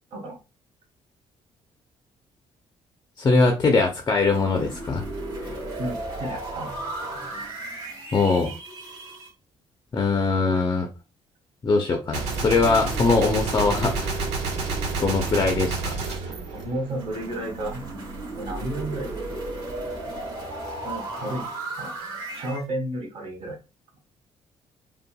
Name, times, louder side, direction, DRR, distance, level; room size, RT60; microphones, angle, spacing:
voice 1, 3.2-5.0 5.5-5.6 8.1-8.5 9.9-10.9 11.6-14.2 15.0-15.9, left 3 dB, 30° left, 0.7 m, -22 dB
sound 1, 4.2-9.3 12.4-16.2 16.9-22.6, right 2 dB, 40° right, 1.8 m, -35 dB
voice 2, 5.8-6.8 16.5-17.8 18.4-19.2 20.8-21.5 21.8-21.9 22.3-23.6, right 1 dB, 55° right, 1.9 m, -32 dB
Gunshot gunfire, 12.1-17.3, right 4 dB, 85° right, 1.2 m, -29 dB
5.5 x 2.4 x 2.3 m
cardioid pair, 120°, 11 cm